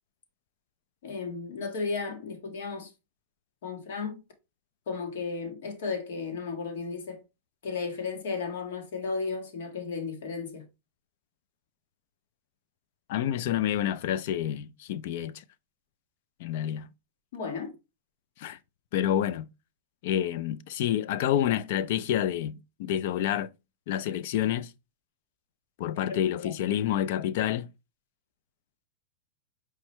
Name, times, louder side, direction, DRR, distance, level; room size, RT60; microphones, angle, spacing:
voice 1, 1.0-2.9 3.6-4.2 4.9-7.2 7.6-10.6 17.3-17.7 25.9-26.5, left 4 dB, 80° left, 1.4 m, -34 dB
voice 2, 13.1-15.4 16.4-16.9 18.4-18.6 18.9-19.5 20.0-23.5 23.9-24.7 25.8-27.7, left 11 dB, 60° left, 0.3 m, -28 dB
4.7 x 2.1 x 4.3 m
supercardioid pair, 155°, 0 cm